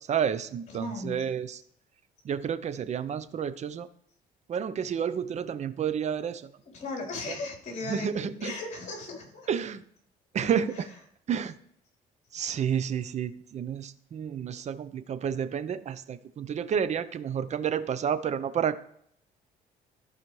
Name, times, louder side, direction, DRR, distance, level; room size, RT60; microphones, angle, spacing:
voice 1, 0.1-1.6 2.2-3.9 4.5-6.5 7.3-7.4 7.9-8.5 9.5-9.8 10.3-10.9 11.3-11.5 12.3-18.8, right 8 dB, 40° right, 13 dB, 0.7 m, -30 dB
voice 2, 0.7-1.3 6.7-9.5 10.7-10.8, left 2 dB, 45° left, 0 dB, 3.8 m, -37 dB
14.5 x 5.0 x 3.2 m, 0.68 s
cardioid pair, 110°, 17 cm